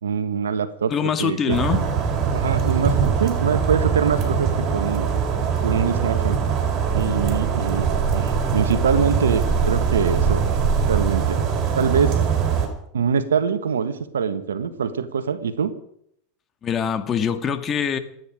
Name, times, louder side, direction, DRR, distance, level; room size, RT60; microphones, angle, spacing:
voice 1, 0.0-0.9 1.2-1.6 2.3-5.1 5.6-6.4 6.9-10.4 10.9-11.4 11.8-12.2 12.9-15.7, right 6 dB, 80° right, 10 dB, 1.5 m, -24 dB
voice 2, 0.9-1.8 12.5-12.6 16.6-18.0, left 7 dB, 30° left, 9 dB, 1.9 m, -23 dB
sound 1, 1.5-12.7, right 6 dB, 40° right, 5.1 m, -22 dB
28.0 x 9.5 x 5.1 m, 0.71 s
hypercardioid pair, 90°, 0 cm